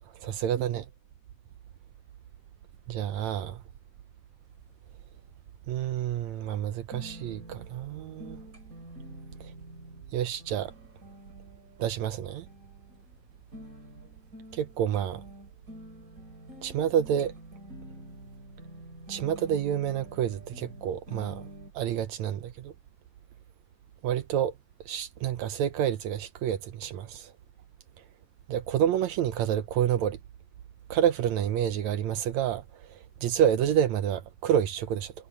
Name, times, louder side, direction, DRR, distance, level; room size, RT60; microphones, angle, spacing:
voice 1, 0.1-0.9 2.9-3.6 5.7-8.4 9.4-9.5 10.1-10.7 11.8-12.5 14.5-15.2 16.6-17.3 19.1-21.4 21.7-22.7 24.0-24.5 24.9-27.3 28.5-30.2 30.9-35.1, right 10 dB, 70° right, 1.9 m, -28 dB
sound 1, 4.5-21.7, equal, 25° right, 4.4 m, -48 dB
omnidirectional pair, 3.7 m